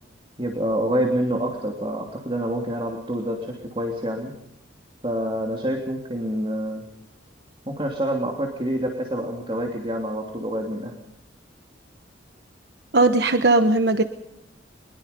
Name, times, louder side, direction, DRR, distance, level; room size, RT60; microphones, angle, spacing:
voice 1, 0.4-4.3 5.0-6.8 7.7-10.9, equal, 25° right, 1 dB, 3.0 m, -27 dB
voice 2, 12.9-14.0, right 2 dB, 55° right, 8 dB, 1.2 m, -18 dB
23.5 x 21.5 x 5.4 m, 0.80 s
head